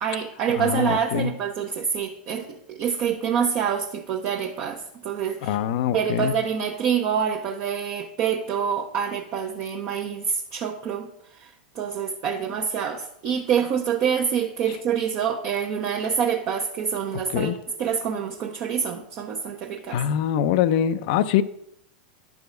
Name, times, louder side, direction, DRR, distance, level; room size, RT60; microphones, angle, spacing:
voice 1, 0.0-5.6 5.9-11.1 11.4-17.5 17.8-20.0, right 7 dB, 45° right, 1.0 m, -26 dB
voice 2, 0.6-1.3 5.4-6.3 17.3-17.6 19.9-21.4, left 10 dB, 60° left, 0.6 m, -23 dB
10.5 x 4.9 x 5.1 m
hypercardioid pair, 105°, 5 cm